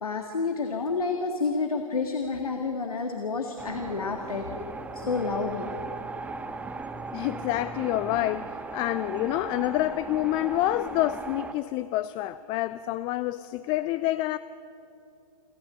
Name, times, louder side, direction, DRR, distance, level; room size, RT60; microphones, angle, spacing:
voice 1, 0.0-4.7 4.9-5.8, left 4 dB, 85° left, 4 dB, 1.8 m, -29 dB
sound 1, 3.6-11.5, right 3 dB, 10° right, 0.8 m, -37 dB
voice 2, 7.1-14.4, left 15 dB, 25° left, 14 dB, 0.4 m, -28 dB
28.5 x 13.0 x 7.4 m, 2.8 s
hypercardioid pair, 125°, 18 cm